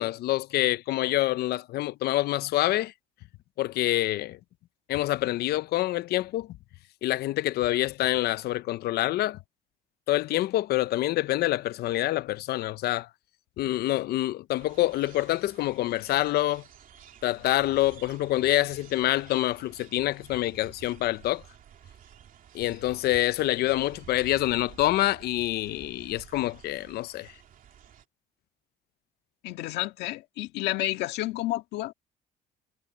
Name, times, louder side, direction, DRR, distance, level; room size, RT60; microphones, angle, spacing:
voice 1, 0.0-2.9 3.6-4.4 4.9-6.6 7.0-9.4 10.1-13.1 13.6-16.6 17.2-21.4 22.5-27.3, left 16 dB, 70° left, 0.6 m, -26 dB
sound 1, 14.6-28.1, right 9 dB, 55° right, 2.8 m, -52 dB
voice 2, 29.4-31.9, left 16 dB, 90° left, 1.7 m, -30 dB
cardioid pair, 110°, 17 cm